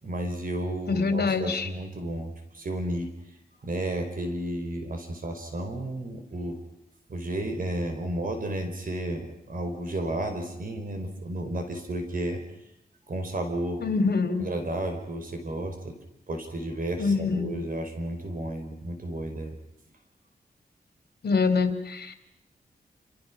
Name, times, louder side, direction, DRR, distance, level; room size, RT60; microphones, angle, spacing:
voice 1, 0.0-3.1 3.6-6.6 7.1-12.4 13.1-13.8 14.4-15.9 16.3-19.5, right 1 dB, 60° right, 5 dB, 4.9 m, -32 dB
voice 2, 0.9-1.7 13.8-14.5 17.0-17.6 21.2-22.1, left 4 dB, 80° left, 8 dB, 3.4 m, -25 dB
28.5 x 28.0 x 6.2 m, 0.80 s
wide cardioid pair, 125°, 16 cm